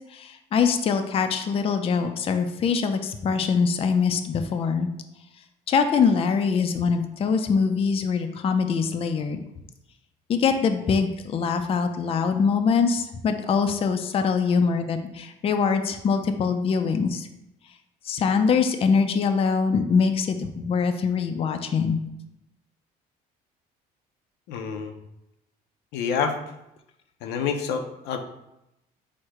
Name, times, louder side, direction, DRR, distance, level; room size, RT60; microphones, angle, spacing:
voice 1, 0.1-4.9 5.7-9.4 10.3-17.3 18.1-22.0, left 5 dB, 35° left, 7 dB, 0.4 m, -23 dB
voice 2, 24.5-25.0 25.9-26.4 27.2-28.2, left 6 dB, 90° left, 6 dB, 0.5 m, -27 dB
4.6 x 2.1 x 4.7 m, 0.87 s
cardioid pair, 110°, 17 cm